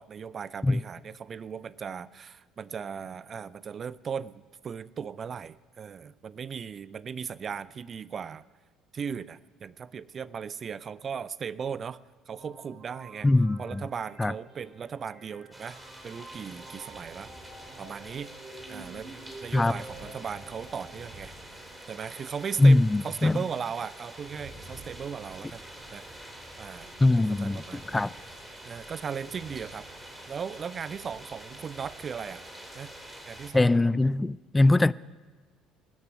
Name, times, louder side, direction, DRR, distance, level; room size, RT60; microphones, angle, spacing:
voice 1, 0.0-8.4 8.9-12.0 12.3-13.3 13.6-15.8 16.0-17.3 17.8-18.3 18.7-21.6 21.9-25.6 25.9-26.1 26.6-26.9 27.4-28.0 28.6-29.9 30.3-32.4 32.7-32.9 33.3-33.8, right 7 dB, 40° right, 0.5 m, -37 dB
sound 1, 12.3-21.0, right 2 dB, 55° right, 5.2 m, -49 dB
voice 2, 13.2-13.8 14.2-14.3 19.5-19.8 22.6-23.4 27.0-27.6 27.9-28.1 33.5-34.9, left 2 dB, 15° left, 0.4 m, -21 dB
sound 2, 15.5-33.5, right 1 dB, 15° right, 3.7 m, -46 dB
19.5 x 6.8 x 9.1 m
hypercardioid pair, 55°, 0 cm